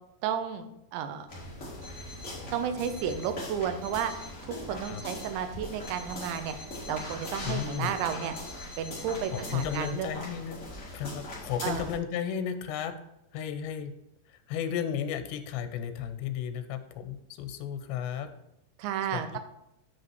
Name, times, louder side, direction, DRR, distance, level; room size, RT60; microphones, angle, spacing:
voice 1, 0.2-0.6 0.9-1.3 2.5-4.1 4.7-6.6 6.9-8.3 8.8-10.1 11.6-11.9 18.8-19.4, right 8 dB, 85° right, 8 dB, 3.0 m, -32 dB
sound 1, 1.3-12.0, left 1 dB, 35° left, 1.1 m, -41 dB
Alarm, 1.8-2.4 2.8-3.4 3.8-4.4 4.8-5.4 5.8-10.0, left 2 dB, 60° right, 3.1 m, -48 dB
voice 2, 7.4-7.9 9.3-10.6 10.9-12.9 13.3-13.9 14.3-18.3 19.1-19.2, left 8 dB, 85° left, 9 dB, 2.8 m, -34 dB
8.4 x 5.2 x 4.6 m, 0.82 s
omnidirectional pair, 5.1 m